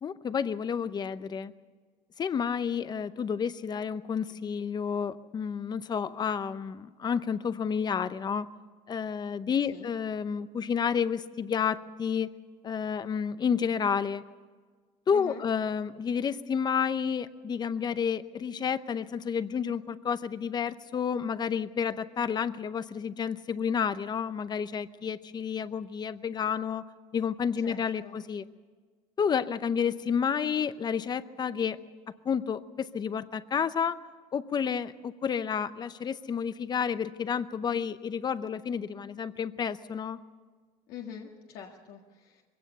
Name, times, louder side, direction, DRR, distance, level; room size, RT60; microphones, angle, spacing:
voice 1, 0.0-1.5 2.2-8.5 8.9-12.3 12.6-14.2 15.1-26.8 27.1-28.4 29.2-31.8 32.2-34.0 34.3-40.2, left 7 dB, 25° left, 14 dB, 0.7 m, -30 dB
voice 2, 15.1-15.5 27.6-28.2 40.9-42.4, left 7 dB, 70° left, -1 dB, 1.8 m, -45 dB
22.5 x 17.0 x 6.9 m, 1.5 s
cardioid pair, 150°, 16 cm